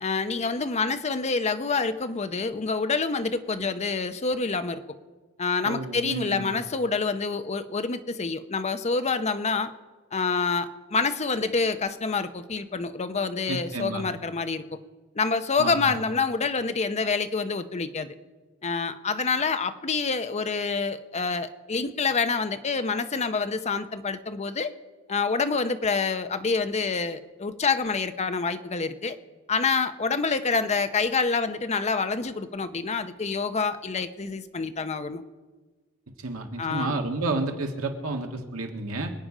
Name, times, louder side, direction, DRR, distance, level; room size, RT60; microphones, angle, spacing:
voice 1, 0.0-4.8 5.4-9.7 10.1-14.6 15.2-18.1 18.6-24.7 25.1-29.2 29.5-35.2 36.6-37.0, left 4 dB, 30° left, 9 dB, 0.7 m, -27 dB
voice 2, 5.6-6.5 13.5-14.0 15.6-15.9 36.2-39.1, right 2 dB, 75° right, 4 dB, 1.7 m, -31 dB
26.0 x 8.7 x 5.0 m, 1.3 s
head